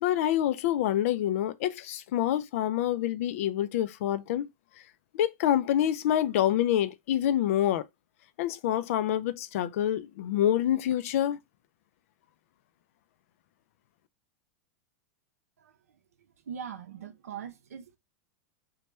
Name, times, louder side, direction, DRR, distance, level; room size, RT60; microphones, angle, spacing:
voice 1, 0.0-4.5 5.1-7.9 8.4-11.4, left 11 dB, 65° left, 0.4 m, -27 dB
voice 2, 16.5-18.0, right 8 dB, 85° right, 0.6 m, -41 dB
3.0 x 2.2 x 3.2 m
hypercardioid pair, 105°, 8 cm